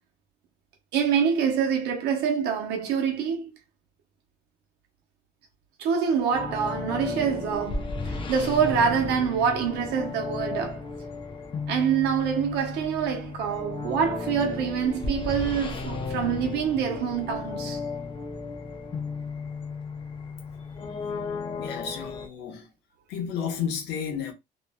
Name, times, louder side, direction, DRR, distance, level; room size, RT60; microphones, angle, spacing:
voice 1, 0.9-3.5 5.8-10.8 11.7-17.8, right 7 dB, 80° right, 0.8 m, -26 dB
sound 1, 6.3-22.3, left 4 dB, 30° left, 0.6 m, -34 dB
voice 2, 21.6-22.7 23.1-24.3, left 7 dB, 85° left, 1.0 m, -32 dB
3.0 x 2.1 x 2.2 m
cardioid pair, 110°, 17 cm